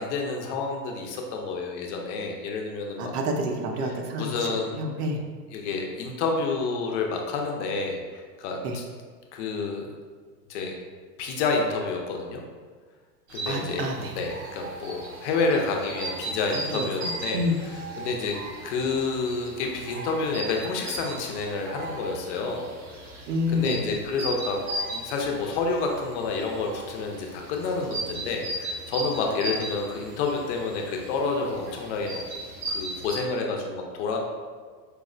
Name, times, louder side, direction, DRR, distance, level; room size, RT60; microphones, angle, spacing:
voice 1, 0.0-3.1 4.1-4.8 5.5-8.8 9.3-9.9 10.5-10.8 11.2-12.4 13.3-13.9 14.1-17.4 18.0-18.3 18.6-22.7 23.5-24.6 24.9-32.2 32.7-34.2, left 4 dB, 45° left, 1 dB, 0.5 m, -29 dB
voice 2, 3.0-5.2 8.6-8.8 13.5-14.1 16.5-17.5 23.3-23.8, left 1 dB, 70° right, 2 dB, 0.7 m, -29 dB
sound 1, 13.3-33.2, right 1 dB, 25° right, 0.6 m, -37 dB
4.5 x 2.0 x 2.5 m, 1.5 s
hypercardioid pair, 105°, 50 cm